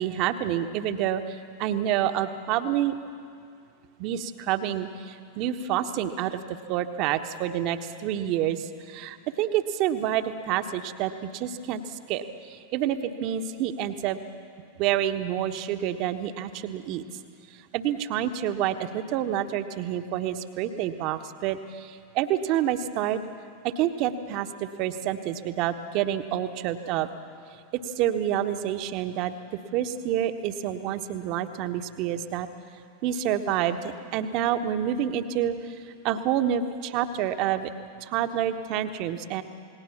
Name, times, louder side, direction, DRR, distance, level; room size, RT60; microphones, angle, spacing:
voice 1, 0.0-2.9 4.0-6.4 6.7-14.2 14.8-17.0 17.7-23.2 23.6-27.1 27.7-32.5 33.0-37.7 38.0-39.4, right 10 dB, 40° right, 8 dB, 1.2 m, -28 dB
28.0 x 19.5 x 7.3 m, 2.2 s
figure-of-eight pair, 90°, 0 cm